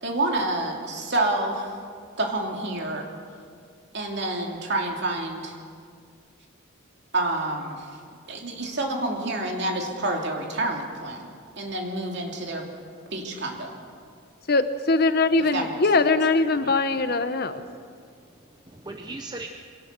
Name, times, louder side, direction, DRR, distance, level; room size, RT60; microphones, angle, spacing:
voice 1, 0.0-1.7 2.2-3.1 3.9-5.5 7.1-7.9 8.3-11.3 11.6-12.7 13.1-13.8 15.5-15.8, right 2 dB, 55° right, 1 dB, 2.8 m, -28 dB
voice 2, 14.5-17.6, left 3 dB, 50° left, 10 dB, 0.8 m, -22 dB
voice 3, 18.1-19.5, right 2 dB, 20° right, 4 dB, 0.7 m, -39 dB
23.0 x 17.5 x 6.8 m, 2.1 s
head